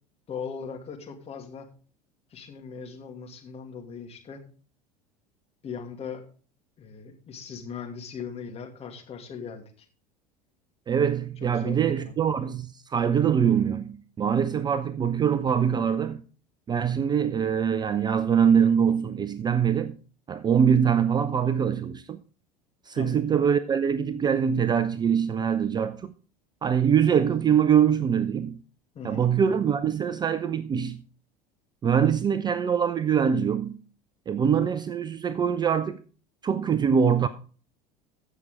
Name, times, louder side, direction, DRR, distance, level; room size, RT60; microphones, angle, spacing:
voice 1, 0.3-1.7 2.3-4.4 5.6-6.2 6.8-9.9 11.4-12.1 22.9-23.3 28.9-29.2, left 6 dB, 30° left, 2.4 m, -39 dB
voice 2, 10.9-16.2 16.7-20.0 20.3-22.2 22.9-26.1 26.6-28.6 29.0-31.0 31.8-33.8 34.3-36.0 36.4-37.3, right 7 dB, 20° right, 0.5 m, -23 dB
15.5 x 6.3 x 3.7 m
figure-of-eight pair, 75°, 20 cm